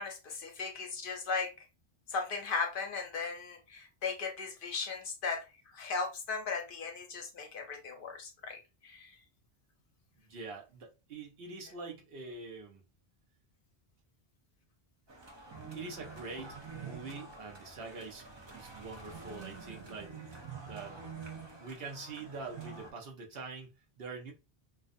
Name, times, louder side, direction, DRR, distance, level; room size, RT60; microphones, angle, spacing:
voice 1, 0.0-1.7 2.1-5.4 5.7-9.2, left 4 dB, 60° left, 0.7 m, -37 dB
voice 2, 10.3-12.8 15.7-20.1 20.6-21.0 21.6-24.3, right 4 dB, 70° right, 0.9 m, -44 dB
sound 1, 15.1-22.9, right 5 dB, 35° right, 0.5 m, -47 dB
2.5 x 2.2 x 2.5 m
omnidirectional pair, 1.1 m